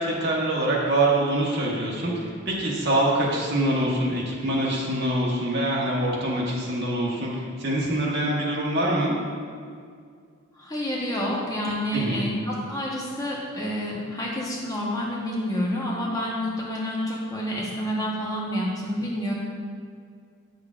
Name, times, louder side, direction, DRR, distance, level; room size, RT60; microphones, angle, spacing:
voice 1, 0.0-9.1 11.9-12.3, right 1 dB, 55° right, -4 dB, 1.3 m, -25 dB
voice 2, 10.6-19.3, equal, 15° left, -4 dB, 0.8 m, -28 dB
8.2 x 6.6 x 2.4 m, 2.1 s
head